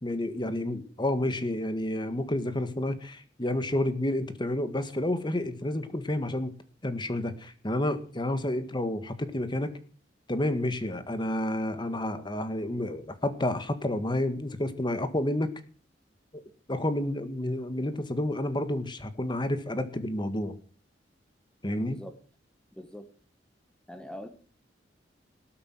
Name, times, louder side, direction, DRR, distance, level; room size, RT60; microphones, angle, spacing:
voice 1, 0.0-6.5 6.8-9.7 10.3-15.5 16.7-20.6 21.6-22.0, left 1 dB, 25° left, 10 dB, 1.7 m, -30 dB
voice 2, 22.7-23.0 23.9-24.3, equal, 5° left, 7 dB, 1.4 m, -42 dB
19.0 x 8.8 x 7.7 m, 0.41 s
head